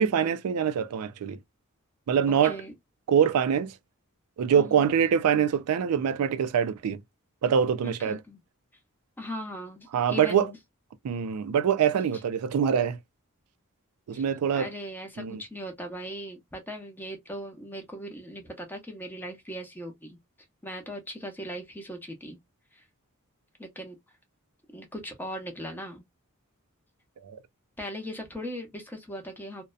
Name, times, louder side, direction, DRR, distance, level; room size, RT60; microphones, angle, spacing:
voice 1, 0.0-1.4 2.1-2.6 3.1-3.7 4.4-7.0 7.4-8.2 9.9-10.5 11.0-13.0 14.1-14.7 15.2-15.4 27.2-27.4, right 8 dB, 85° right, 0.4 m, -24 dB
voice 2, 2.3-2.7 4.6-4.8 7.8-8.4 9.2-10.6 14.1-14.2 14.5-20.2 20.6-22.4 22.7-22.8 23.6-24.0 24.7-26.0 27.8-29.6, equal, 10° left, 0.6 m, -39 dB
2.6 x 2.1 x 2.3 m
head